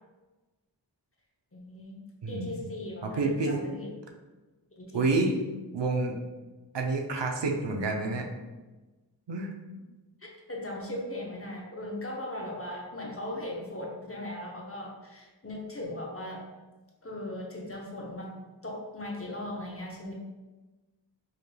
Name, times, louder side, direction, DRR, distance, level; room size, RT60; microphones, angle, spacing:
voice 1, 1.5-2.0 2.3-3.9 4.8-5.0 10.2-16.5 17.0-18.3 18.6-20.1, left 1 dB, 30° left, -1 dB, 0.8 m, -38 dB
voice 2, 2.2-2.6 3.0-3.6 4.9-5.3 5.7-6.1 6.7-8.3 9.3-9.5, right 3 dB, 70° right, 2 dB, 0.6 m, -28 dB
4.8 x 3.1 x 2.2 m, 1.2 s
wide cardioid pair, 60°, 44 cm